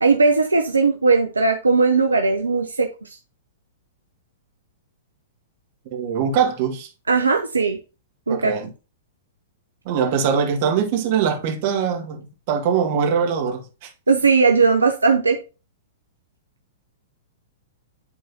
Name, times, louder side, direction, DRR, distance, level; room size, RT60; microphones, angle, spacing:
voice 1, 0.0-3.2 7.1-7.8 8.3-8.5 14.1-15.4, right 4 dB, 80° right, 0.7 m, -18 dB
voice 2, 5.9-6.9 8.3-8.7 9.9-13.9, right 7 dB, 45° right, 1.8 m, -22 dB
11.0 x 3.9 x 2.8 m
figure-of-eight pair, 105°, 0 cm